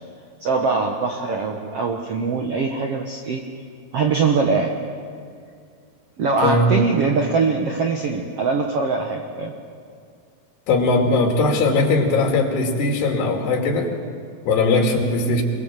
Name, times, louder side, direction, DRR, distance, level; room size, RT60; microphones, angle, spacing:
voice 1, 0.4-3.4 3.9-4.7 6.2-9.5, right 4 dB, 80° right, 3 dB, 1.3 m, -22 dB
voice 2, 6.4-6.7 10.7-13.9 14.4-15.4, left 3 dB, 80° left, 2 dB, 4.6 m, -19 dB
24.5 x 22.5 x 7.5 m, 2.3 s
omnidirectional pair, 4.7 m